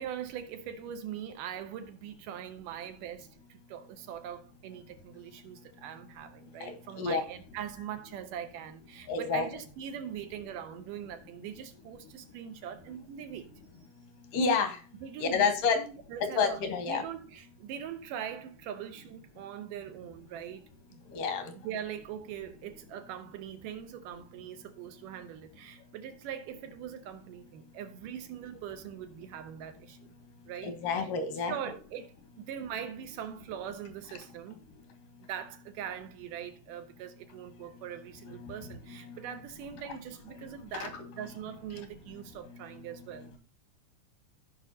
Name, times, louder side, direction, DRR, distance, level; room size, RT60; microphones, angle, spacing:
voice 1, 0.0-13.5 15.0-21.0 21.6-30.2 30.5-30.7 31.0-31.1 31.5-34.6 35.3-43.3, right 9 dB, 85° right, 2.5 m, -42 dB
voice 2, 6.6-7.2 9.1-9.5 14.3-14.8 15.2-15.8 16.4-17.0 21.1-21.5 30.6-31.5 38.4-38.8 39.1-39.2 40.7-40.9, left 5 dB, 80° left, 2.9 m, -29 dB
15.5 x 5.2 x 2.8 m
omnidirectional pair, 3.7 m